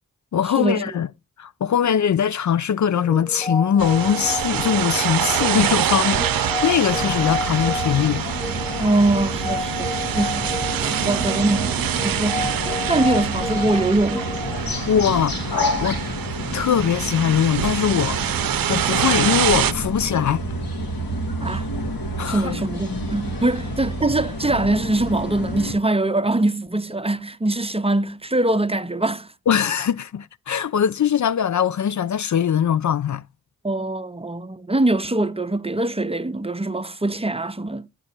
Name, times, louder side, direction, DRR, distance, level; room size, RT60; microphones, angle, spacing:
voice 1, 0.3-1.1 1.4-8.3 14.9-16.0 16.5-18.2 18.7-20.4 22.2-22.6 29.5-33.2, left 8 dB, 55° left, 0.5 m, -21 dB
sound 1, 3.0-15.8, left 1 dB, 15° left, 1.0 m, -31 dB
sound 2, 3.8-19.7, right 10 dB, 80° right, 0.6 m, -25 dB
sound 3, 6.9-25.7, left 1 dB, 85° left, 2.9 m, -30 dB
voice 2, 8.8-10.5 10.8-11.8 12.0-14.3 21.4-21.7 22.3-29.3 33.6-37.9, right 2 dB, 15° right, 0.8 m, -23 dB
8.7 x 8.4 x 4.3 m
cardioid pair, 40°, 34 cm